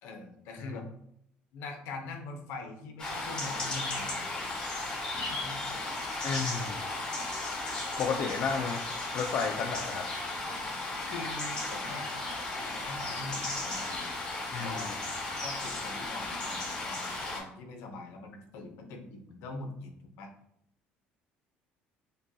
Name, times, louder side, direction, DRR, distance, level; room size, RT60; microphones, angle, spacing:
voice 1, 0.0-0.9 1.5-4.6 5.3-5.8 11.1-12.1 12.6-14.2 14.6-14.9 15.4-19.9 20.2-20.3, left 3 dB, 80° left, 4 dB, 0.8 m, -43 dB
sound 1, 3.0-17.4, left 2 dB, 25° left, 1.5 m, -35 dB
voice 2, 6.2-6.9 8.0-8.8 9.1-10.1 14.5-14.9, left 5 dB, 55° left, 2 dB, 0.4 m, -32 dB
5.2 x 2.3 x 2.8 m, 0.74 s
cardioid pair, 125°, 4 cm